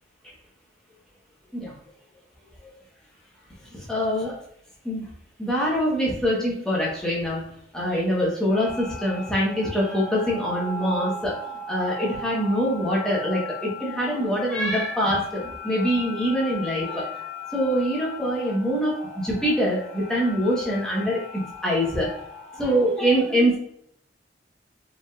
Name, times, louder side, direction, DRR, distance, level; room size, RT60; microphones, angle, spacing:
voice 1, 3.7-4.3 4.8-5.1 5.4-7.4 7.7-11.3 11.7-17.2 17.5-22.1 22.5-23.6, equal, 5° left, -5 dB, 1.1 m, -24 dB
sound 1, 8.5-22.9, left 3 dB, 50° left, 1.4 m, -38 dB
5.1 x 3.5 x 2.4 m, 0.69 s
head